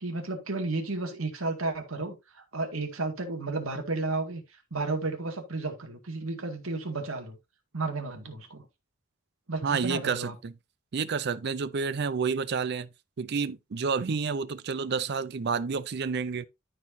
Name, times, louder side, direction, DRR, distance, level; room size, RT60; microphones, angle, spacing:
voice 1, 0.0-7.4 7.7-8.6 9.5-10.3, right 3 dB, 90° right, 2.1 m, -33 dB
voice 2, 9.6-10.5 10.9-12.9 13.2-16.4, right 5 dB, 55° right, 0.5 m, -29 dB
13.5 x 4.6 x 2.7 m
head